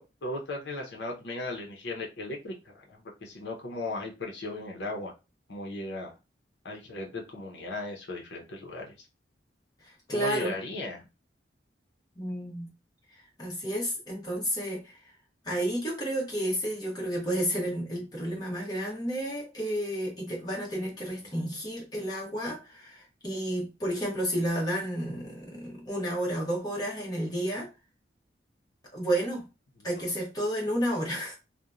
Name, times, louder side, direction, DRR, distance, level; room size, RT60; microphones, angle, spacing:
voice 1, 0.0-5.1 5.5-6.2 6.6-8.9 10.1-11.0, left 2 dB, 80° left, 0.7 m, -36 dB
voice 2, 9.8-10.6 12.2-12.7 13.1-15.0 15.4-27.7 28.9-29.5 29.8-31.4, equal, 20° left, 1.0 m, -31 dB
2.9 x 2.1 x 2.4 m
head